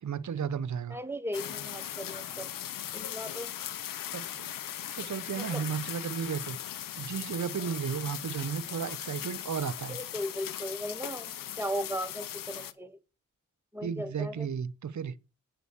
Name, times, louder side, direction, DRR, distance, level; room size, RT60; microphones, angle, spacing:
voice 1, 0.0-1.0 4.1-4.5 5.0-6.6 7.0-10.0 13.8-15.1, right 7 dB, 60° right, 0.9 m, -34 dB
voice 2, 0.9-2.5 2.9-3.5 5.4-5.6 9.9-11.3 11.6-13.0 13.7-14.5, equal, 5° right, 1.6 m, -37 dB
sound 1, 1.3-12.7, left 11 dB, 90° left, 0.8 m, -39 dB
9.3 x 6.2 x 7.1 m
cardioid pair, 50°, 32 cm